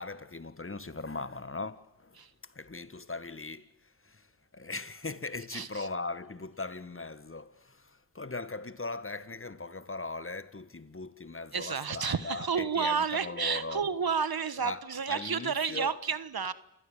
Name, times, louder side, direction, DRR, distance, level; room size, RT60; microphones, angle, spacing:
voice 1, 0.0-13.9 14.6-16.0, left 3 dB, 30° left, 1.7 m, -39 dB
voice 2, 5.5-5.9 11.5-16.5, right 6 dB, 60° right, 1.5 m, -31 dB
28.5 x 17.0 x 9.3 m
cardioid pair, 40°, 42 cm